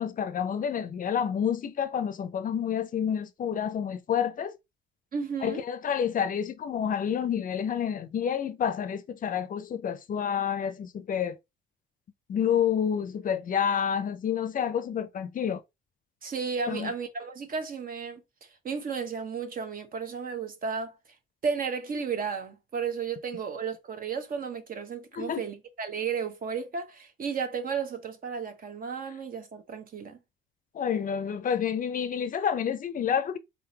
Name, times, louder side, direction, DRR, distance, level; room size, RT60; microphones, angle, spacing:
voice 1, 0.0-4.6 5.4-11.4 12.3-15.6 16.7-16.9 25.1-25.4 30.7-33.4, left 8 dB, 45° left, 0.5 m, -29 dB
voice 2, 5.1-5.6 16.2-18.2 18.6-21.0 21.4-30.2, right 6 dB, 45° right, 1.0 m, -33 dB
4.1 x 3.8 x 2.8 m
cardioid pair, 110°, 20 cm